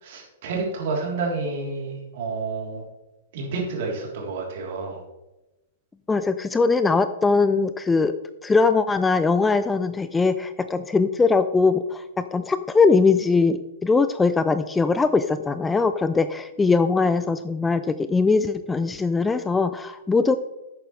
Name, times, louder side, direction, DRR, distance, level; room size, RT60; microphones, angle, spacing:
voice 1, 0.0-2.8 3.3-5.0, right 3 dB, 50° right, -1 dB, 3.3 m, -29 dB
voice 2, 6.1-8.1 8.4-20.4, left 4 dB, 10° left, 11 dB, 0.4 m, -21 dB
11.0 x 8.8 x 3.2 m, 0.97 s
figure-of-eight pair, 105°, 0 cm